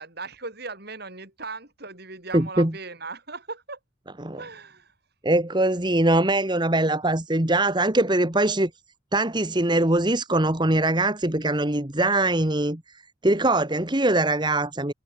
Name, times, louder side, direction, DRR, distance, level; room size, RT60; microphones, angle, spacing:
voice 1, 0.0-3.8 4.4-4.9, right 3 dB, 55° right, 5.9 m, -38 dB
voice 2, 2.3-2.7 4.2-4.4 5.2-8.7 9.1-12.8 13.2-14.9, right 2 dB, 25° right, 1.8 m, -22 dB
head